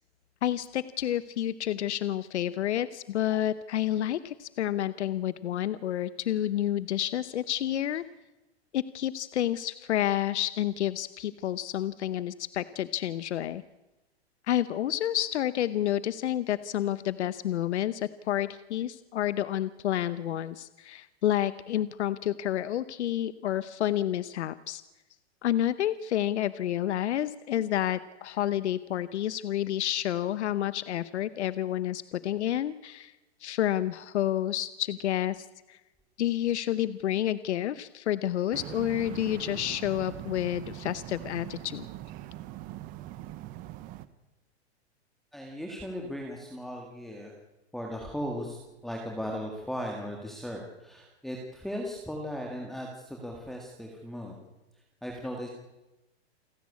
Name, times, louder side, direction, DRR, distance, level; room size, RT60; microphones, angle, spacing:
voice 1, 0.4-8.0 8.7-13.6 14.5-24.8 25.4-33.1 33.4-35.8 36.2-41.9, left 12 dB, 80° left, 15 dB, 0.9 m, -29 dB
sound 1, 38.5-44.1, right 14 dB, 25° right, 0.9 m, -42 dB
voice 2, 45.3-47.3 47.7-48.6 48.8-54.5 55.0-55.5, equal, ahead, 0 dB, 1.9 m, -37 dB
28.5 x 10.5 x 8.4 m, 1.0 s
hypercardioid pair, 155°, 34 cm